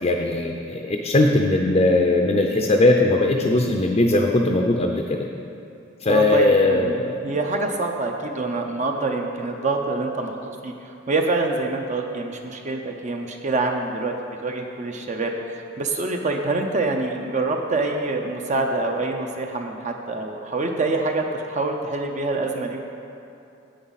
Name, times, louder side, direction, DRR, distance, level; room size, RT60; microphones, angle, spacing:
voice 1, 0.0-5.0 6.0-7.2, left 2 dB, 35° left, 2 dB, 0.5 m, -19 dB
voice 2, 6.1-10.3 10.6-10.7 11.1-14.1 14.4-22.8, right 3 dB, 40° right, 3 dB, 0.6 m, -26 dB
9.7 x 8.0 x 4.0 m, 2.8 s
head